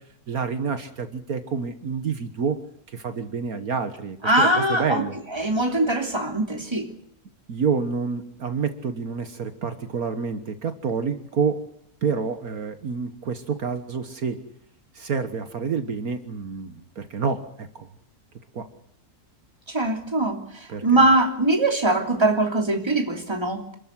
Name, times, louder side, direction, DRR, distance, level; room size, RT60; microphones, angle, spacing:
voice 1, 0.3-2.6 2.9-5.1 7.5-11.6 12.0-14.4 14.9-17.9 18.5-18.7 20.7-21.1, right 5 dB, 65° right, 9 dB, 1.8 m, -28 dB
voice 2, 4.2-5.0 5.3-6.9 19.7-20.4 20.8-23.8, right 2 dB, 15° right, 4 dB, 3.1 m, -21 dB
27.5 x 13.5 x 9.6 m, 0.70 s
omnidirectional pair, 1.6 m